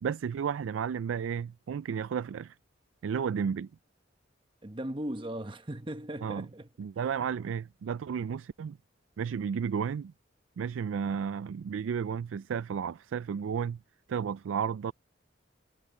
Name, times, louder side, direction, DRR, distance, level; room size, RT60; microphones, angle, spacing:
voice 1, 0.0-2.5 3.0-3.7 6.2-6.5 6.8-8.8 9.2-10.1 10.6-13.8 14.1-14.9, right 7 dB, 90° right, 0.3 m, -32 dB
voice 2, 4.6-6.7, right 1 dB, 25° right, 1.0 m, -37 dB
head